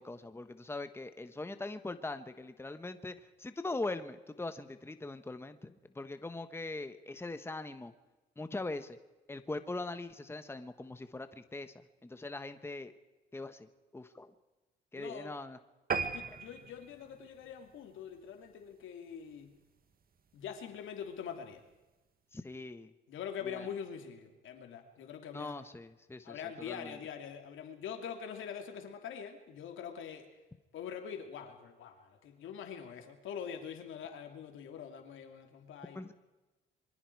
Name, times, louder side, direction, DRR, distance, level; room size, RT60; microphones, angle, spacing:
voice 1, 0.0-3.1 3.4-7.9 8.4-9.0 9.3-11.7 12.0-12.9 13.3-13.7 13.9-14.3 14.9-15.6 22.3-22.9 23.5-23.7 25.3-26.9 35.9-36.1, left 2 dB, 10° left, 10 dB, 1.2 m, -41 dB
voice 2, 14.9-15.4 15.9-19.5 20.3-21.6 23.1-25.5 26.2-30.3 30.7-36.1, left 8 dB, 80° left, 5 dB, 3.0 m, -44 dB
sound 1, 15.9-18.6 19.1-19.3 19.8-19.9 20.2-20.3 20.5-20.6, right 6 dB, 50° right, 1.7 m, -38 dB
26.0 x 23.0 x 4.8 m, 1.1 s
cardioid pair, 90°, 20 cm